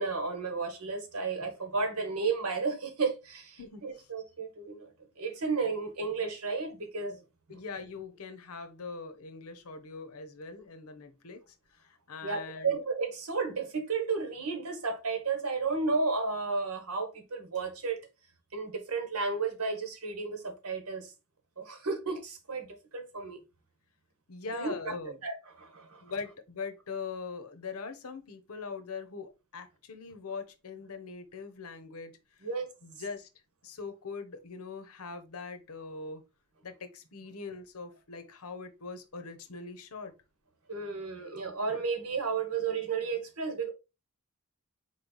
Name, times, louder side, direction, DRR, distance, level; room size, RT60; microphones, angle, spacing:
voice 1, 0.0-7.2 12.2-18.0 18.5-21.1 21.6-23.4 24.5-24.9 25.2-26.0 32.4-32.7 40.7-43.7, right 4 dB, 80° right, 1.2 m, -33 dB
voice 2, 3.6-4.1 7.5-12.8 24.3-25.1 26.0-32.5 32.8-33.3 33.6-36.2 36.6-40.1, left 4 dB, 80° left, 0.8 m, -42 dB
4.2 x 3.2 x 3.9 m
head